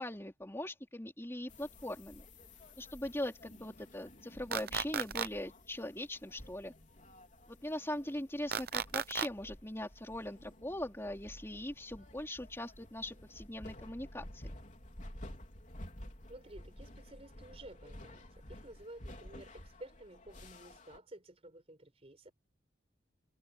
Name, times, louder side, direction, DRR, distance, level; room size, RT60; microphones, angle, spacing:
voice 1, 0.0-2.2 2.8-6.7 7.5-14.5, left 1 dB, 15° left, 3.5 m, -41 dB
sound 1, 1.5-21.0, left 1 dB, 45° left, 3.7 m, -52 dB
sound 2, 4.5-5.3 8.5-9.3, right 7 dB, 55° right, 0.8 m, -34 dB
voice 2, 16.3-22.3, right 1 dB, 35° right, 4.5 m, -53 dB
head